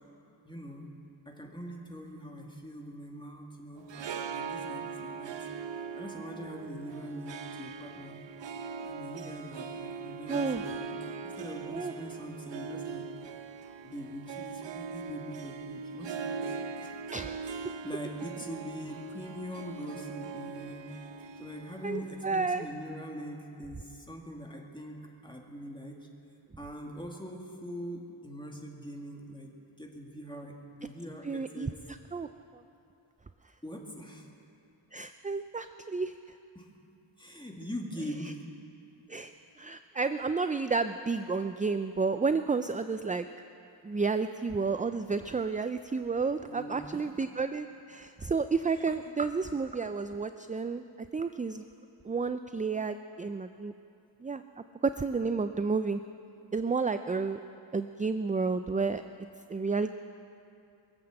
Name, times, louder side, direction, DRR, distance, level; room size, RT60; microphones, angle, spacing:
voice 1, 0.4-0.9 1.3-5.4 5.9-8.2 8.8-13.1 13.8-17.0 17.4-20.9 21.4-26.1 26.6-29.5 29.8-31.7 33.6-34.3 36.5-36.7 37.2-38.5 46.5-47.1 48.6-49.0, equal, 10° left, 0 dB, 2.1 m, -43 dB
Harp, 3.8-23.1, right 5 dB, 65° right, 0.6 m, -41 dB
voice 2, 10.3-10.6 11.7-11.9 17.1-17.4 21.8-22.6 31.3-31.7 32.1-32.3 34.9-36.1 39.1-39.3 39.6-43.3 43.8-50.8 51.1-51.7 52.0-53.7 54.2-54.4 54.8-56.0 56.5-57.4 57.7-59.0 59.5-59.9, right 4 dB, 20° right, 10 dB, 0.3 m, -31 dB
22.5 x 7.9 x 7.7 m, 2.7 s
wide cardioid pair, 75°, 47 cm